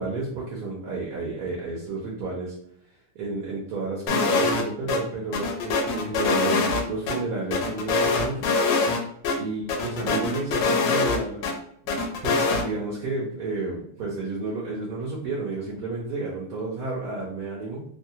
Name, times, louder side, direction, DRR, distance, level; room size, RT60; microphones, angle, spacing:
voice 1, 0.0-2.5 3.1-8.5 9.4-11.4 11.8-17.8, right 3 dB, 65° right, -4 dB, 1.0 m, -31 dB
sound 1, 4.1-4.6 4.9-5.0 5.3-7.2 7.5-9.0 9.2-9.4 9.7-11.5 11.9-12.6, left 3 dB, 85° left, 1.3 m, -23 dB
3.1 x 2.3 x 2.7 m, 0.67 s
omnidirectional pair, 1.9 m